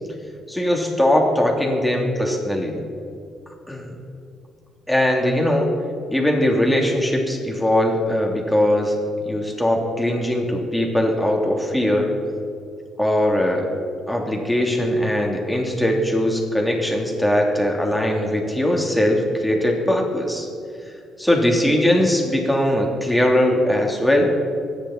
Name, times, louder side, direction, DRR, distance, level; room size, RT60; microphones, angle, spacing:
voice 1, 0.5-2.8 3.7-3.9 4.9-5.7 6.1-12.1 13.0-13.7 14.1-20.5 21.2-24.3, left 1 dB, 5° left, 0 dB, 3.2 m, -20 dB
25.0 x 10.5 x 4.4 m, 2.4 s
cardioid pair, 90°, 0 cm